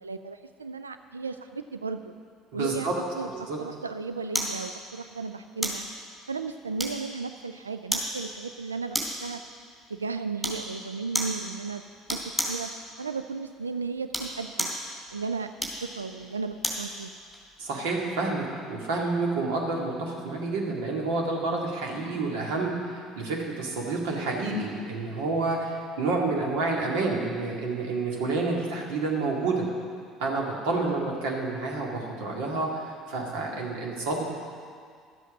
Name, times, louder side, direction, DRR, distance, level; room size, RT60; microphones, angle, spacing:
voice 1, 0.0-2.1 2.5-2.9 3.2-5.9 6.3-9.4 9.9-11.8 12.1-12.7 13.0-14.7 15.1-17.1, right 4 dB, 85° right, 9 dB, 0.3 m, -35 dB
voice 2, 2.5-2.9 3.3-3.6 17.6-29.7 30.2-34.2, right 3 dB, 65° right, -1 dB, 2.1 m, -29 dB
sound 1, 4.3-4.6 5.6-5.9 6.8-7.2 7.9-8.1 8.9-9.3 10.4-10.7 11.1-11.4 12.1-12.6 14.0-14.8 15.6-16.9 17.3-17.5, equal, ahead, 3.0 m, -30 dB
12.5 x 8.1 x 6.3 m, 2.1 s
figure-of-eight pair, 60°, 0 cm